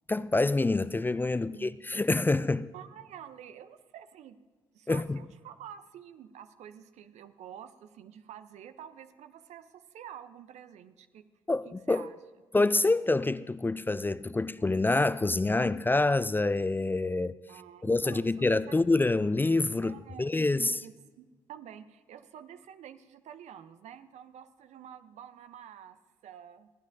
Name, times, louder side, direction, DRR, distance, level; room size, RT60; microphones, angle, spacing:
voice 1, 0.1-2.7 4.9-5.2 11.5-12.1 12.5-17.4 17.8-20.8, left 2 dB, 15° left, 0.3 m, -27 dB
voice 2, 1.4-1.8 2.7-4.4 4.7-11.2 11.6-12.1 17.5-18.8 19.8-26.7, right 9 dB, 65° right, 0.6 m, -48 dB
28.0 x 9.3 x 2.6 m
hypercardioid pair, 45°, 12 cm